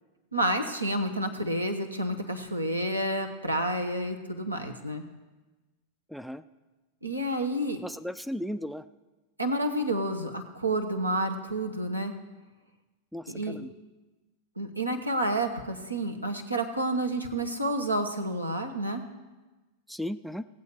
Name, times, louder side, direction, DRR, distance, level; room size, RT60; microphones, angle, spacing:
voice 1, 0.3-5.0 7.0-7.8 9.4-12.1 13.3-13.6 14.6-19.0, right 1 dB, 85° right, 4 dB, 1.1 m, -29 dB
voice 2, 6.1-6.4 7.8-8.8 13.1-13.7 19.9-20.4, equal, ahead, 12 dB, 0.4 m, -35 dB
18.0 x 7.8 x 4.3 m, 1.2 s
figure-of-eight pair, 90°, 0 cm